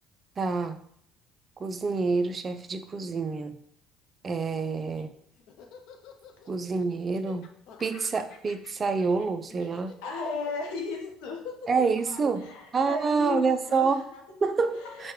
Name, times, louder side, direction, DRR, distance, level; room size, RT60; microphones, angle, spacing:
voice 1, 0.4-0.8 1.6-3.6 4.2-5.1 6.5-7.5 7.8-9.9 11.7-12.5 12.7-14.1 14.4-15.1, right 4 dB, 30° right, 0.4 m, -27 dB
Laughter, 4.7-13.1, left 6 dB, 65° left, 0.5 m, -51 dB
voice 2, 10.0-14.4 14.7-15.1, left 4 dB, 90° left, 0.9 m, -36 dB
6.1 x 2.2 x 3.1 m
cardioid pair, 115°, 0 cm